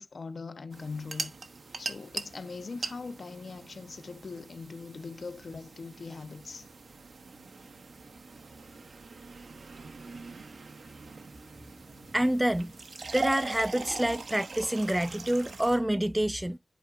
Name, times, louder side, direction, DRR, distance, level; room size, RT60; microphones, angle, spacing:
voice 1, 0.0-1.3 1.8-6.7, left 4 dB, 60° left, 0.6 m, -41 dB
sound 1, 0.7-15.8, right 4 dB, 80° right, 0.9 m, -42 dB
voice 2, 12.1-12.7 13.1-16.6, right 1 dB, 10° right, 0.3 m, -27 dB
11.5 x 4.8 x 2.3 m
wide cardioid pair, 115°, 0 cm